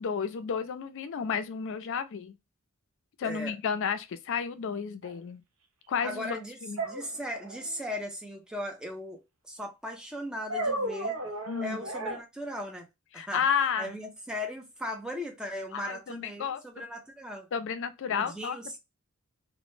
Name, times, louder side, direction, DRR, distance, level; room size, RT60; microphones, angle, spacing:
voice 1, 0.0-2.3 3.2-5.4 5.9-6.8 11.5-11.8 13.1-13.9 15.7-16.8 17.5-18.6, left 7 dB, 60° left, 0.4 m, -32 dB
voice 2, 3.2-3.5 6.0-6.6 6.8-11.2 11.6-12.8 13.1-13.5 13.8-17.5 18.1-18.8, equal, 5° right, 0.5 m, -38 dB
sound 1, 5.0-5.1 6.8-7.7 10.5-12.2, right 1 dB, 65° right, 0.7 m, -33 dB
2.1 x 2.0 x 3.0 m
head